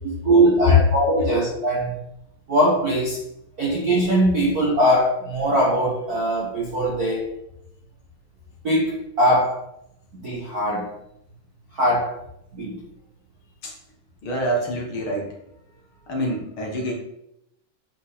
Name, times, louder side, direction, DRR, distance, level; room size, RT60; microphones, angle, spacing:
voice 1, 0.0-1.9 2.5-3.2 3.6-7.3 8.6-9.6 10.2-10.9 11.8-12.1 12.5-12.8, right 1 dB, 45° right, -3 dB, 1.4 m, -21 dB
voice 2, 14.2-15.3 16.1-16.9, right 1 dB, 50° left, 0 dB, 2.1 m, -26 dB
9.9 x 5.1 x 4.2 m, 0.81 s
omnidirectional pair, 3.6 m